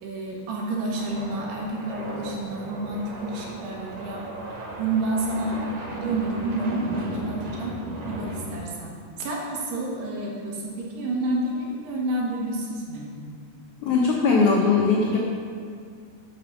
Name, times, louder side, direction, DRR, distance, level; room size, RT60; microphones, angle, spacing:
voice 1, 0.0-4.3 4.8-7.8 8.1-13.1, right 2 dB, 85° right, -2 dB, 3.3 m, -29 dB
sound 1, 0.9-8.7, right 1 dB, 65° right, 2.5 m, -36 dB
voice 2, 13.8-15.2, left 4 dB, 85° left, -3 dB, 1.7 m, -20 dB
7.8 x 5.2 x 6.8 m, 2.2 s
omnidirectional pair, 4.7 m